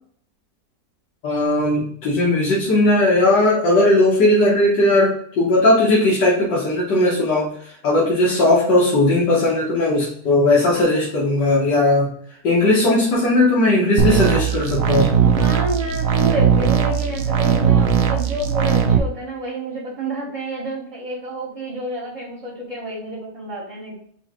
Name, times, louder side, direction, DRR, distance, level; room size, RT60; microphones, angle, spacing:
voice 1, 1.2-12.1 12.4-15.1, left 2 dB, 90° left, -6 dB, 1.9 m, -17 dB
sound 1, 14.0-19.0, right 8 dB, 70° right, 0.8 m, -18 dB
voice 2, 15.2-24.0, right 2 dB, 25° right, -7 dB, 1.1 m, -29 dB
4.8 x 3.0 x 3.6 m, 0.63 s
omnidirectional pair, 1.8 m